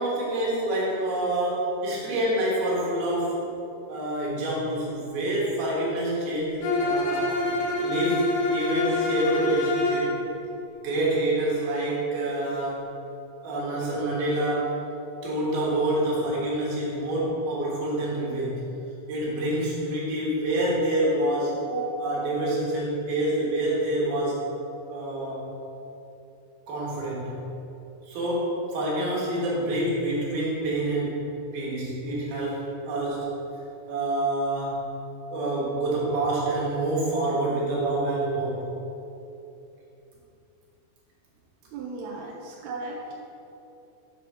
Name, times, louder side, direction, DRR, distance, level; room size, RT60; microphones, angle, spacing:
voice 1, 0.0-3.4 3.9-7.4 7.8-10.2 10.8-12.9 13.4-14.7 15.2-18.6 19.1-24.4 24.9-25.5 26.7-27.5 28.1-31.3 31.5-33.3 33.9-35.0 35.3-38.7, right 1 dB, 70° right, -5 dB, 3.4 m, -27 dB
Bowed string instrument, 6.6-10.2, left 2 dB, 90° left, 3.1 m, -26 dB
voice 2, 41.7-43.1, right 3 dB, 90° right, -3 dB, 2.8 m, -36 dB
7.9 x 4.3 x 6.2 m, 2.8 s
omnidirectional pair, 4.5 m